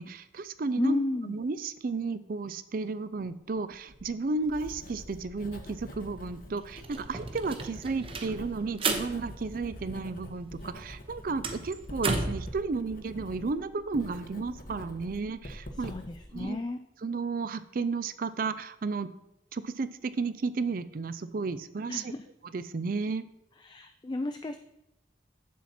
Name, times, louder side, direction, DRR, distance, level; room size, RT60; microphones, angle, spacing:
voice 1, 0.0-1.0 1.2-15.9 16.3-16.6 17.0-19.1 19.5-22.1 22.5-23.2, right 4 dB, 50° right, 13 dB, 0.4 m, -33 dB
voice 2, 0.8-1.4 15.8-16.8 21.9-22.2 23.6-24.6, left 2 dB, 25° left, 8 dB, 0.3 m, -32 dB
Writing, 3.7-16.4, equal, 50° left, 1.0 m, -46 dB
sound 1, 6.0-6.1 6.4-10.3 10.6-12.5, right 3 dB, 30° right, 0.8 m, -34 dB
7.3 x 7.3 x 4.2 m, 0.88 s
head